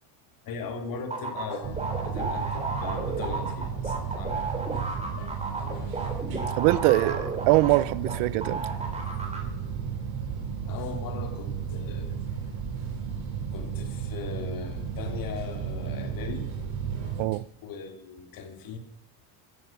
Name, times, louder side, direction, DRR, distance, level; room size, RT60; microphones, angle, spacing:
voice 1, 0.4-4.5 4.7-6.0 10.6-12.2 13.5-16.5 17.3-18.8, left 5 dB, 45° left, 3.0 m, -39 dB
sound 1, 1.1-8.2 8.4-9.4, right 3 dB, 15° right, 3.6 m, -33 dB
sound 2, 1.6-17.2, right 7 dB, 55° right, 7.5 m, -34 dB
voice 2, 6.6-8.7 17.2-17.4, right 19 dB, 90° right, 0.8 m, -23 dB
15.0 x 14.5 x 5.9 m
cardioid pair, 150°, 46 cm